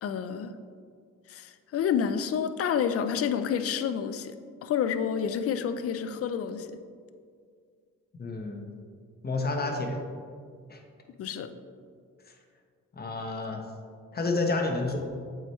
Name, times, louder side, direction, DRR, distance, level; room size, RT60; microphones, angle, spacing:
voice 1, 0.0-0.6 1.3-4.3 4.6-6.7 11.2-11.5, left 7 dB, 50° left, 10 dB, 0.5 m, -29 dB
voice 2, 8.2-8.6 9.2-10.0 10.7-10.8 12.9-13.6 14.1-15.0, left 3 dB, 30° left, 2 dB, 1.0 m, -29 dB
7.7 x 4.6 x 3.1 m, 2.1 s
cardioid pair, 90°, 30 cm